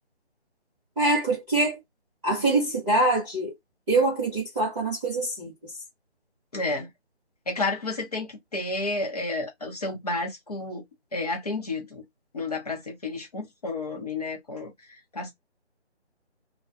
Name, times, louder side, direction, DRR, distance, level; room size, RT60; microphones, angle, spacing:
voice 1, 1.0-1.8 2.2-3.5 3.9-5.5, right 2 dB, ahead, 0.7 m, -24 dB
voice 2, 6.5-6.9 7.5-10.8 11.1-12.0 12.3-15.3, left 2 dB, 35° left, 0.8 m, -31 dB
2.3 x 2.2 x 2.5 m
figure-of-eight pair, 160°, 34 cm